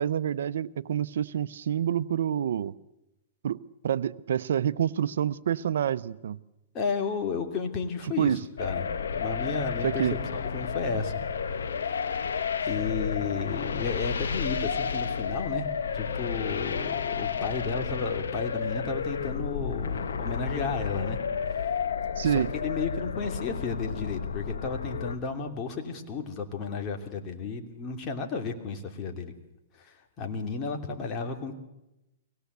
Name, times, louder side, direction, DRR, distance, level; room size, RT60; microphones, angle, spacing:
voice 1, 0.0-2.7 3.4-6.4 8.2-8.4 9.8-10.2 22.2-22.5, right 9 dB, 75° right, 0.7 m, -27 dB
voice 2, 6.7-8.9 9.2-11.2 11.8-12.1 12.6-15.7 15.9-21.2 21.5-21.9 22.2-29.3 29.8-31.5, left 4 dB, 30° left, 2.9 m, -33 dB
sound 1, 8.6-25.2, left 6 dB, 85° left, 1.6 m, -31 dB
23.5 x 18.0 x 8.1 m
hypercardioid pair, 135°, 0 cm